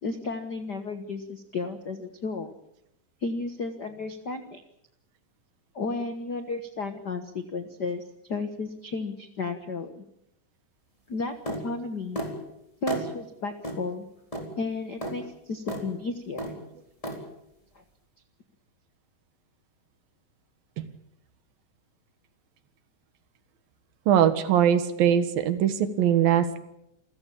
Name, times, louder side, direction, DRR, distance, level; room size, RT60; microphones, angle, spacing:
voice 1, 0.0-2.5 3.2-4.6 5.7-8.0 8.3-10.0 11.1-12.2 12.8-14.1 14.6-16.5, left 3 dB, 85° left, 8 dB, 0.9 m, -33 dB
sound 1, 11.5-11.6 12.1-12.3 12.9-13.1 13.6-13.8 14.3-14.5 15.0-15.1 15.7-15.8 16.4-16.6 17.0-17.2, right 1 dB, 10° left, 3.5 m, -32 dB
voice 2, 24.1-26.6, right 9 dB, 75° right, 11 dB, 3.3 m, -21 dB
28.5 x 15.0 x 8.6 m, 0.81 s
omnidirectional pair, 4.2 m